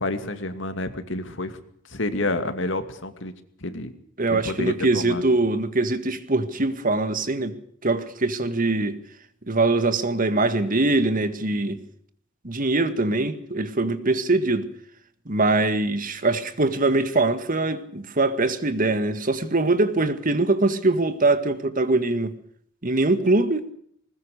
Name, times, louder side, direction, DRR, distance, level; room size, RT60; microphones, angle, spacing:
voice 1, 0.0-1.6 1.9-3.3 3.6-3.9 4.3-5.2, left 2 dB, 70° left, 2.5 m, -29 dB
voice 2, 4.2-7.6 7.8-9.0 9.5-11.8 12.4-14.7 15.3-22.4 22.8-23.6, right 2 dB, 45° right, 1.8 m, -22 dB
20.5 x 20.5 x 6.7 m
head